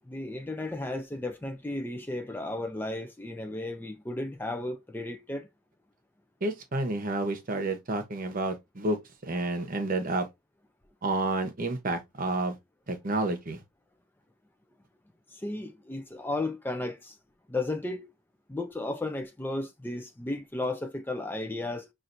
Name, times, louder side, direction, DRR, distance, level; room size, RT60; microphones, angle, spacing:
voice 1, 0.0-5.5 15.3-17.2 17.5-18.1 18.5-21.9, left 2 dB, 10° left, 0.4 m, -34 dB
voice 2, 6.4-9.0 9.2-10.3 11.0-12.6 12.9-13.6, right 2 dB, 45° right, 0.9 m, -30 dB
5.7 x 2.5 x 2.6 m
head